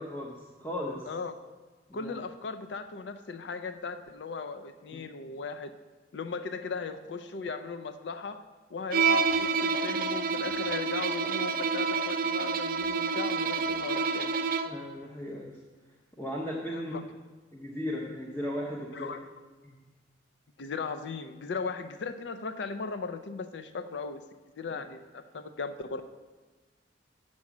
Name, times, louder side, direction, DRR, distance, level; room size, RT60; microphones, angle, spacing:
voice 1, 0.0-1.1 1.9-2.1 4.9-5.0 14.6-15.6 16.2-16.9 17.5-19.1 19.6-19.9, equal, 15° left, -3 dB, 0.8 m, -36 dB
voice 2, 1.9-5.7 6.1-8.4 8.7-14.3 16.7-17.0 18.9-19.3 20.6-24.2 24.6-26.1, left 4 dB, 65° left, 9 dB, 0.5 m, -37 dB
Bowed string instrument, 8.9-14.9, right 5 dB, 50° right, 0.5 m, -28 dB
7.6 x 6.1 x 7.1 m, 1.3 s
head